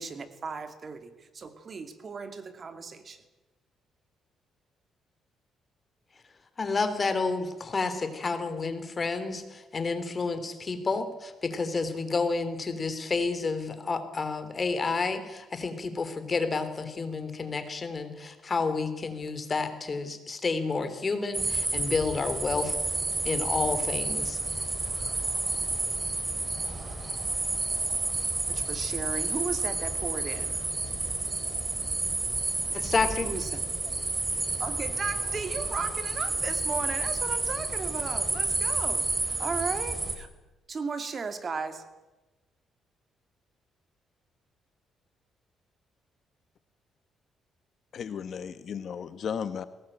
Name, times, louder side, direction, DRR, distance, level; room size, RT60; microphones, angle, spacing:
voice 1, 0.0-3.2 28.5-30.5 32.7-32.9 33.2-33.9 34.6-40.3 40.7-41.8, right 4 dB, 40° right, 9 dB, 2.5 m, -36 dB
voice 2, 6.6-22.8 23.2-24.4 32.7-33.3, left 4 dB, 35° left, 10 dB, 3.4 m, -30 dB
sound 1, 21.3-40.1, right 2 dB, 25° right, 3.9 m, -30 dB
voice 3, 47.9-49.6, left 7 dB, 60° left, 13 dB, 1.1 m, -34 dB
21.5 x 18.5 x 9.0 m, 1.1 s
cardioid pair, 90°, 0 cm